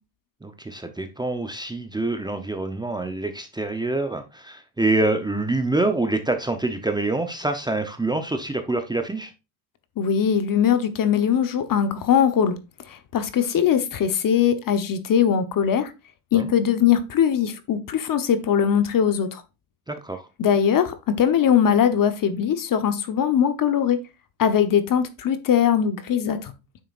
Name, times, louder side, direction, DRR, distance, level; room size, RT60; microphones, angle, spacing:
voice 1, 0.4-9.3 16.3-16.5 19.9-20.2, right 2 dB, 10° right, 0.8 m, -26 dB
voice 2, 10.0-12.6 12.9-15.9 16.3-19.4 20.4-24.0 24.4-26.5, left 8 dB, 40° left, 1.1 m, -21 dB
9.4 x 6.7 x 2.6 m
cardioid pair, 115°, 49 cm